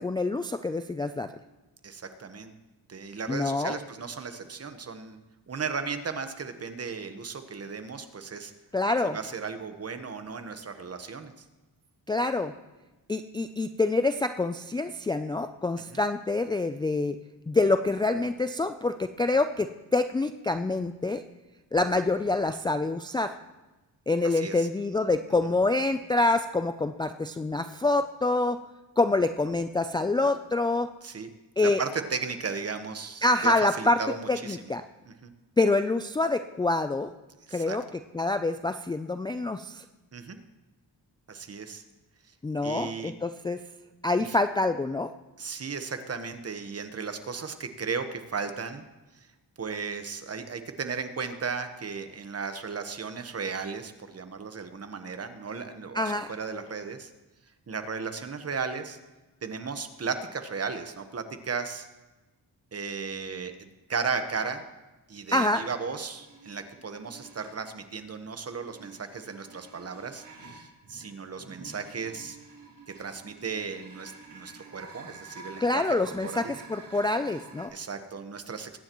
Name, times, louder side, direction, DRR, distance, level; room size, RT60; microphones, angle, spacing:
voice 1, 0.0-1.3 3.3-3.8 8.7-9.2 12.1-12.5 13.1-17.2 17.5-21.2 21.7-23.3 24.1-28.6 29.0-30.9 31.6-31.8 33.2-34.0 34.3-34.8 35.6-37.1 37.5-37.8 38.1-39.8 42.4-43.6 44.0-45.1 55.9-56.3 65.3-65.7 75.6-77.7, left 2 dB, 10° left, 8 dB, 0.3 m, -26 dB
voice 2, 1.8-2.6 2.9-5.2 5.5-8.5 9.1-11.3 15.8-16.0 24.2-24.7 31.0-31.3 31.6-34.7 35.0-35.3 37.5-37.8 40.1-40.4 41.3-41.8 42.6-43.1 44.2-44.4 45.4-48.8 49.6-56.0 56.3-57.1 57.7-59.0 59.4-61.9 62.7-64.6 65.1-72.4 73.0-76.0 76.2-76.6 77.7-78.8, right 5 dB, 35° right, 8 dB, 1.2 m, -35 dB
sound 1, 66.1-67.7 68.4-77.7, right 3 dB, 60° right, 3.8 m, -49 dB
22.5 x 9.6 x 3.1 m, 1.1 s
cardioid pair, 100°, 40 cm